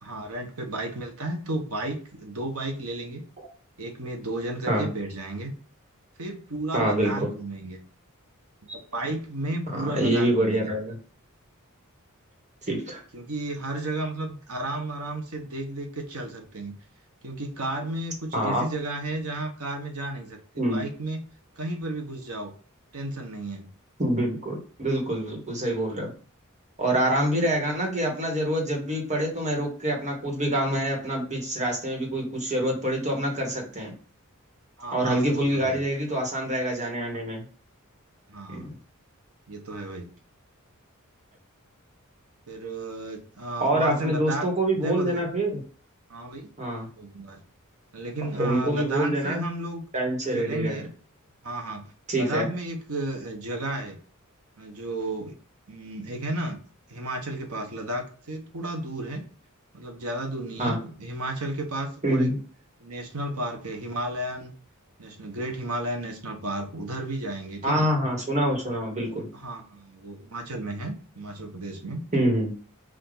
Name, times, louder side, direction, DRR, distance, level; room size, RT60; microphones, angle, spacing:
voice 1, 0.0-3.2 3.8-5.5 6.2-7.8 8.9-10.7 13.1-16.8 17.2-20.4 20.7-21.2 21.6-22.5 22.9-23.7 34.8-35.8 38.3-38.8 39.5-40.1 42.5-44.5 44.7-45.3 46.1-46.5 46.9-47.4 47.9-49.8 50.3-50.9 51.4-54.0 54.6-55.3 55.7-56.6 56.9-59.2 59.7-62.3 62.8-64.5 65.0-67.9 69.3-72.0, right 1 dB, 85° right, 4 dB, 1.1 m, -33 dB
voice 2, 6.7-7.3 9.7-11.0 12.7-13.0 18.3-18.6 20.6-20.8 24.0-26.1 26.8-33.9 34.9-37.4 38.5-38.7 43.6-45.6 46.6-46.9 48.4-49.4 49.9-50.8 52.1-52.5 60.6-60.8 62.0-62.3 67.6-69.3 72.1-72.5, right 1 dB, 35° right, 1 dB, 1.5 m, -26 dB
5.0 x 2.6 x 3.9 m, 0.40 s
head